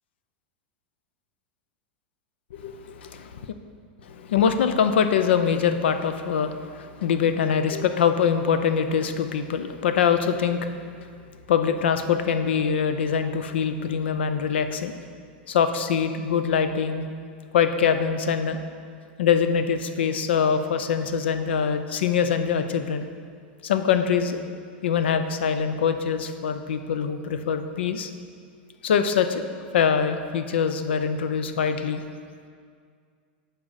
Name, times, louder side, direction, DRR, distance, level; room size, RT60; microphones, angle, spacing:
voice 1, 2.5-3.5 4.0-11.1 11.5-15.0 15.5-17.1 17.5-18.6 19.2-23.1 23.6-24.4 24.8-28.1 28.8-29.4 29.7-32.0, left 7 dB, 90° left, 9 dB, 0.6 m, -24 dB
9.7 x 6.3 x 4.1 m, 2.1 s
supercardioid pair, 140°, 6 cm